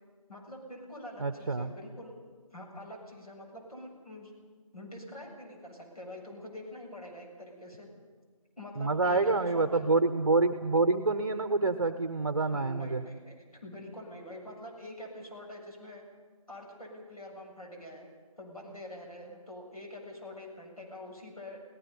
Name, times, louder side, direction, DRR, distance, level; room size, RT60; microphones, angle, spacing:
voice 1, 0.3-2.1 2.5-4.3 4.7-7.9 8.6-9.9 12.5-16.0 16.5-18.1 18.4-21.6, left 1 dB, 85° left, -1 dB, 7.1 m, -45 dB
voice 2, 1.2-1.7 8.8-13.0, right 3 dB, 40° right, 11 dB, 0.8 m, -27 dB
29.0 x 17.5 x 5.4 m, 1.5 s
figure-of-eight pair, 165°, 19 cm